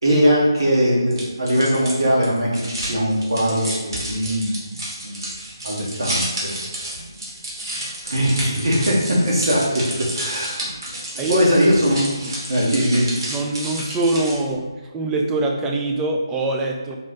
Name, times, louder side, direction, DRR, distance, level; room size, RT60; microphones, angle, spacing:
voice 1, 0.0-4.6 5.0-5.3 5.6-6.6 8.0-9.8 10.1-10.7 11.3-12.0 12.5-13.1, equal, 75° right, -4 dB, 1.4 m, -20 dB
sound 1, 1.1-14.5, right 1 dB, 60° right, 1.4 m, -31 dB
voice 2, 11.2-11.5 12.2-12.3 13.3-14.7 14.9-17.0, right 2 dB, 10° right, 1 dB, 0.3 m, -23 dB
4.1 x 2.5 x 3.9 m, 1.3 s
figure-of-eight pair, 155°, 2 cm